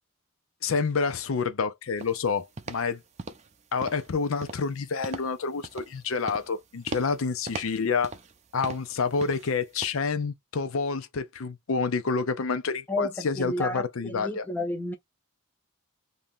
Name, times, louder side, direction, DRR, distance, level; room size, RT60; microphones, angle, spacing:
voice 1, 0.6-3.0 3.7-8.1 8.5-14.4, left 5 dB, 70° left, 0.6 m, -28 dB
sound 1, 2.0-2.2 2.6-2.9 3.2-3.5 3.8-4.1 4.4-4.7 5.0-5.3 5.6-6.0 6.3-6.5 6.9-7.2 7.5-8.4 8.6-8.9 9.2-9.5 9.8-9.9, right 3 dB, 30° right, 0.5 m, -39 dB
voice 2, 12.9-14.9, left 1 dB, 10° left, 0.6 m, -31 dB
2.9 x 2.7 x 3.7 m
head